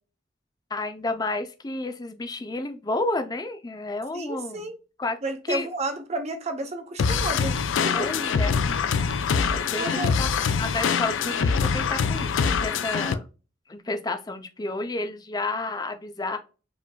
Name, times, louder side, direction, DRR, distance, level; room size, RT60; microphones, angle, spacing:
voice 1, 0.7-4.7 5.0-5.2 5.5-5.7 7.9-9.0 9.5-13.3 13.7-16.4, left 2 dB, 20° left, 0.5 m, -31 dB
voice 2, 4.1-4.8 5.2-7.6 7.8-8.1 9.0-9.2 9.5-10.1, right 2 dB, 35° right, 0.7 m, -32 dB
sound 1, 7.0-13.1, left 6 dB, 80° left, 0.4 m, -24 dB
5.0 x 2.5 x 2.2 m
head